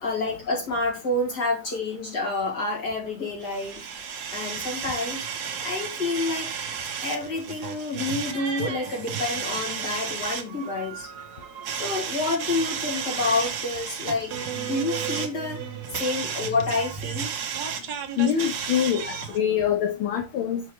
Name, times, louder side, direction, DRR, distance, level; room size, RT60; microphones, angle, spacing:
voice 1, 0.0-3.9 4.3-5.3 5.6-6.6 7.0-11.1 11.7-15.6 15.9-17.3, left 3 dB, 50° left, 2.8 m, -28 dB
sound 1, 3.4-19.4, right 7 dB, 60° right, 1.2 m, -33 dB
voice 2, 18.2-19.0 19.3-20.6, left 9 dB, 80° left, 1.7 m, -24 dB
6.1 x 5.5 x 3.1 m
omnidirectional pair, 2.3 m